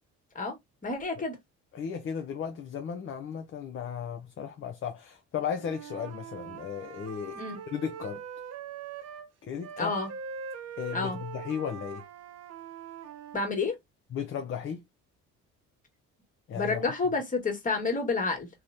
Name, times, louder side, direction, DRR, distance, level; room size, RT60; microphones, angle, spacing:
voice 1, 0.8-1.4 7.3-7.6 9.8-10.1 10.9-11.2 13.3-13.8 16.5-18.5, left 3 dB, 25° left, 1.2 m, -29 dB
voice 2, 1.7-8.2 9.4-10.0 10.8-12.0 14.1-14.8 16.5-16.9, left 7 dB, 45° left, 0.5 m, -35 dB
Wind instrument woodwind instrument, 5.6-9.3 9.6-13.5, right 7 dB, 55° right, 0.6 m, -42 dB
2.9 x 2.1 x 2.5 m
supercardioid pair, 80°, 30 cm